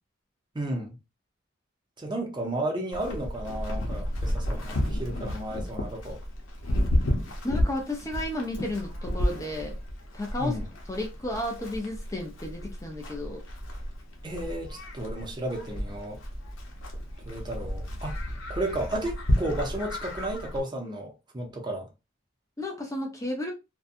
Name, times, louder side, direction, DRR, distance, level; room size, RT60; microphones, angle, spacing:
voice 1, 0.5-1.0 2.0-6.2 10.4-10.7 14.2-16.2 17.2-18.2 18.5-21.9, right 1 dB, 25° right, 0.6 m, -33 dB
Livestock farm animals working animals, 2.9-20.6, left 1 dB, 85° left, 0.8 m, -32 dB
voice 2, 7.4-9.8 10.1-10.6 10.9-13.4 22.6-23.5, left 1 dB, 15° left, 0.5 m, -33 dB
2.6 x 2.2 x 2.5 m
head